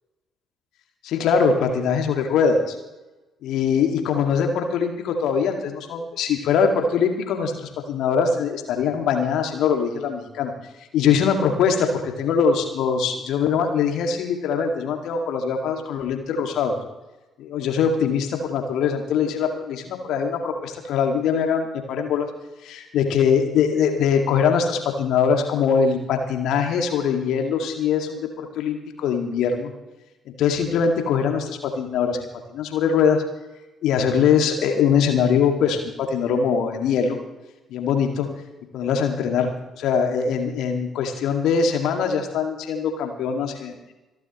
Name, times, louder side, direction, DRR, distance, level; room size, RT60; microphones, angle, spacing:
voice 1, 1.0-2.8 3.4-10.5 10.9-16.8 17.4-22.3 22.6-29.7 30.4-32.2 32.5-33.2 33.8-35.8 36.1-37.2 37.7-38.3 38.7-39.5 39.8-43.8, left 6 dB, 60° left, 4 dB, 2.2 m, -22 dB
27.0 x 11.5 x 3.1 m, 1.1 s
figure-of-eight pair, 45°, 0 cm